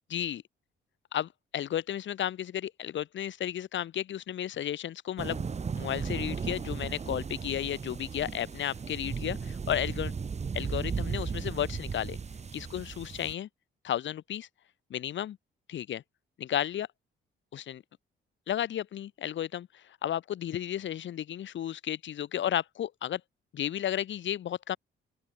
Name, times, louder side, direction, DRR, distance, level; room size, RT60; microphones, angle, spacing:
voice 1, 0.1-0.4 1.1-5.4 5.8-10.1 10.5-12.2 12.5-13.5 13.8-14.5 14.9-15.4 15.7-16.0 16.4-16.9 17.5-17.8 18.5-23.2 23.5-24.8, left 11 dB, 70° left, 5.7 m, -33 dB
sound 1, 5.2-13.3, right 5 dB, 35° right, 1.7 m, -36 dB
open air
cardioid pair, 90°, 20 cm